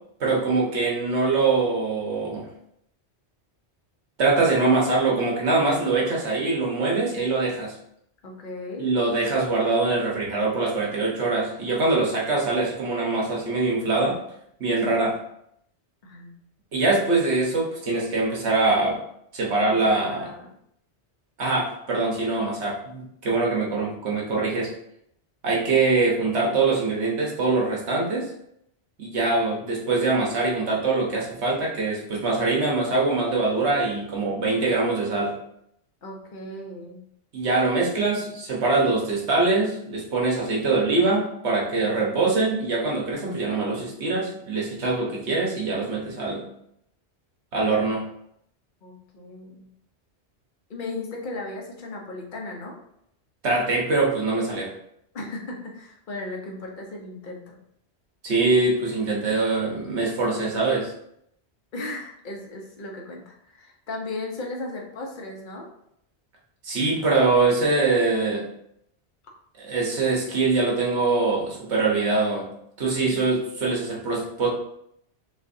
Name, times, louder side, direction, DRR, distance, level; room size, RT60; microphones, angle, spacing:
voice 1, 0.2-2.5 4.2-7.8 8.8-14.2 14.6-15.2 16.7-19.0 19.3-20.3 21.4-24.7 25.4-28.3 29.0-35.3 37.3-46.4 47.5-48.1 53.4-54.7 58.2-60.9 66.6-68.5 69.6-72.5 72.8-74.5, right 3 dB, 75° right, -2 dB, 1.4 m, -23 dB
voice 2, 8.2-8.9 14.9-15.1 16.0-16.4 19.6-20.5 36.0-37.0 48.8-49.7 50.7-52.7 55.1-57.6 61.7-65.7, left 2 dB, 50° left, -1 dB, 1.0 m, -36 dB
6.2 x 2.6 x 2.6 m, 0.74 s
omnidirectional pair, 1.1 m